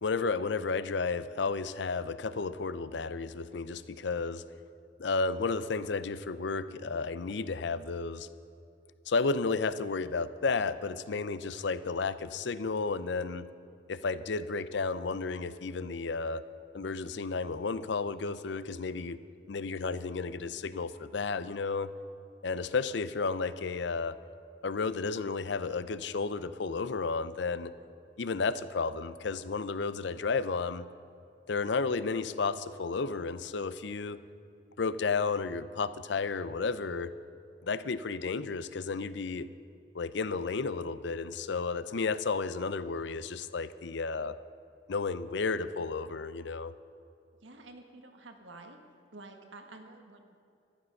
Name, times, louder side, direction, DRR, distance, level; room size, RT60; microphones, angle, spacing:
voice 1, 0.0-4.4 5.0-8.3 9.1-13.5 13.9-16.4 16.7-19.2 19.5-21.9 22.4-24.2 24.6-27.7 28.2-30.9 31.5-34.2 34.8-37.1 37.6-39.5 39.9-44.4 44.9-46.7, left 4 dB, 70° left, 15 dB, 0.5 m, -32 dB
voice 2, 47.4-48.8 49.1-50.4, right 2 dB, 85° right, 4 dB, 1.6 m, -50 dB
14.0 x 11.5 x 6.5 m, 2.5 s
head